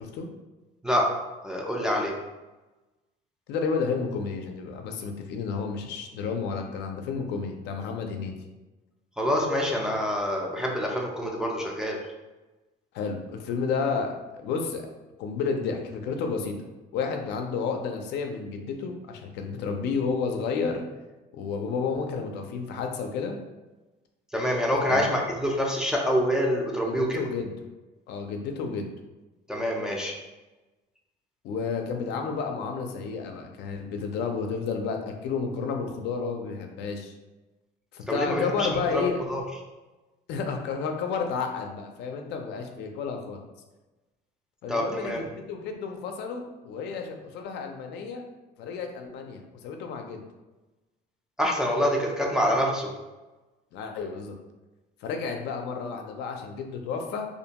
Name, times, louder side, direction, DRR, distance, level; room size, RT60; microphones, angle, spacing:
voice 1, 1.4-2.1 9.2-12.0 24.3-27.2 29.5-30.2 38.1-39.0 39.3-39.4 44.7-45.3 51.4-52.9, equal, 5° right, -2 dB, 0.3 m, -26 dB
voice 2, 3.5-8.3 12.9-14.9 15.2-16.6 16.9-20.8 21.3-23.3 24.9-25.1 26.8-27.5 28.1-28.9 31.4-37.1 37.9-39.2 40.3-43.4 44.6-48.3 48.6-50.2 53.7-54.3 55.0-57.3, left 5 dB, 75° left, 4 dB, 0.4 m, -31 dB
2.5 x 2.2 x 2.8 m, 1.1 s
cardioid pair, 145°, 18 cm